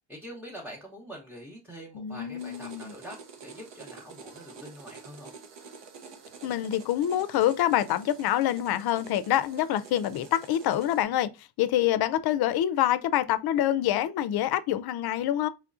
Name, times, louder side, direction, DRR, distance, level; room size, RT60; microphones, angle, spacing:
voice 1, 0.1-5.3, equal, 5° right, 0.7 m, -44 dB
voice 2, 1.9-2.9 6.4-11.3 11.6-15.5, left 12 dB, 60° left, 0.5 m, -26 dB
sound 1, 2.4-11.0, right 5 dB, 80° right, 0.9 m, -48 dB
4.8 x 3.1 x 2.5 m
cardioid pair, 170°, 43 cm